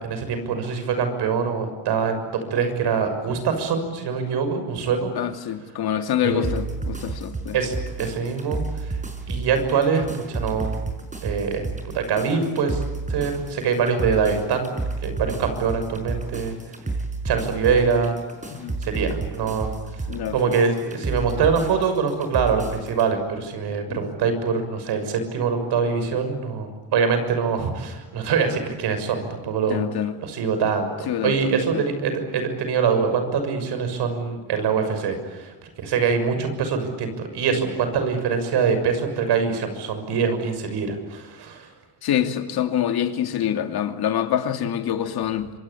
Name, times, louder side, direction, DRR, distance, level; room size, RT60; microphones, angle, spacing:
voice 1, 0.0-2.2 2.5-5.1 6.2-6.5 7.5-9.0 9.3-10.8 11.2-11.7 11.9-12.8 13.1-14.7 15.0-16.5 17.2-18.2 18.8-20.0 20.3-29.8 30.2-41.7, right 5 dB, 70° right, 8 dB, 6.6 m, -24 dB
voice 2, 5.2-7.6 18.5-18.8 20.1-20.5 23.9-24.0 29.7-30.2 31.1-31.8 42.0-45.5, left 10 dB, 60° left, 6 dB, 2.7 m, -26 dB
sound 1, 6.4-23.1, right 3 dB, 20° right, 5.4 m, -31 dB
27.0 x 25.0 x 8.6 m, 1.3 s
cardioid pair, 115°, 41 cm